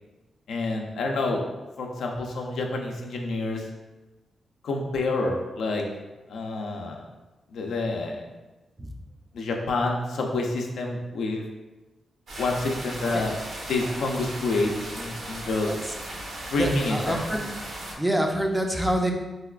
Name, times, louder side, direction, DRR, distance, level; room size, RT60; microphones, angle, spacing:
voice 1, 0.5-1.5 1.8-3.7 4.6-5.8 6.3-7.0 7.5-8.3 9.3-11.4 12.4-13.3 13.7-15.8 16.5-17.2, left 2 dB, 85° left, 1 dB, 0.4 m, -28 dB
sound 1, 12.3-17.9, right 1 dB, 75° right, 0.7 m, -37 dB
voice 2, 16.6-17.5 18.0-19.1, right 1 dB, 5° right, 2 dB, 0.3 m, -26 dB
4.0 x 2.2 x 2.3 m, 1.1 s
wide cardioid pair, 150°, 0 cm